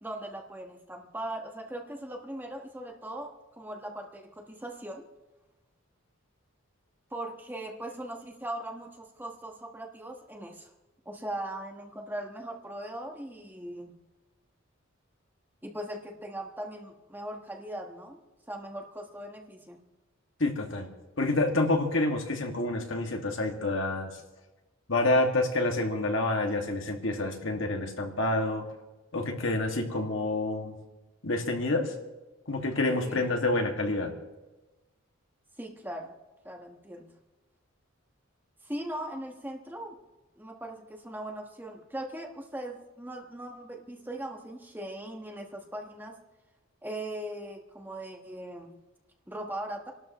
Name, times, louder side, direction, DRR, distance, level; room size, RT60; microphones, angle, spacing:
voice 1, 0.0-5.0 7.1-10.7 11.0-13.9 15.6-18.2 18.5-19.8 33.0-33.3 35.6-36.2 36.4-37.1 38.6-40.0 40.4-46.2 46.8-48.8 49.3-49.9, right 1 dB, 10° right, 2 dB, 1.2 m, -39 dB
voice 2, 20.4-20.9 21.2-24.1 24.9-28.7 29.1-30.8 31.2-31.9 32.5-34.1, left 2 dB, 60° left, 2 dB, 2.0 m, -28 dB
28.5 x 12.5 x 3.1 m, 1.1 s
head